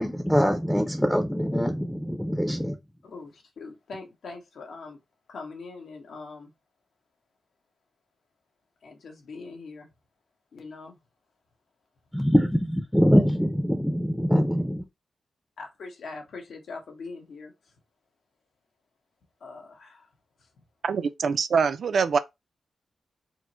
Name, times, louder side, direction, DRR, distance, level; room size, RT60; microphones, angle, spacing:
voice 1, 0.0-2.8 12.1-14.8, equal, ahead, 0.6 m, -23 dB
voice 2, 3.0-5.0 5.3-6.5 8.8-9.9 10.5-11.0 15.6-17.7 19.4-20.1 20.4-20.5, left 4 dB, 80° left, 1.4 m, -42 dB
voice 3, 20.8-22.2, right 5 dB, 65° right, 0.4 m, -24 dB
4.5 x 2.1 x 4.3 m
wide cardioid pair, 140°, 0 cm